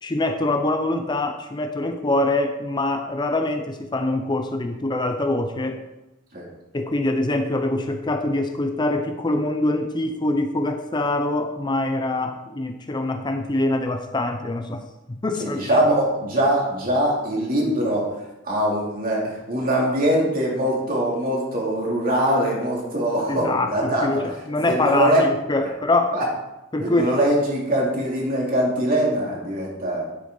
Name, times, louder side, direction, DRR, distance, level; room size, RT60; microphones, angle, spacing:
voice 1, 0.0-5.8 6.7-14.8 15.1-15.7 23.3-26.2 26.7-27.1, left 2 dB, 25° left, 6 dB, 0.6 m, -24 dB
voice 2, 15.4-24.4 24.7-25.3 26.1-26.3 26.8-30.1, right 1 dB, 45° right, -3 dB, 2.9 m, -22 dB
10.0 x 8.4 x 3.9 m, 0.98 s
head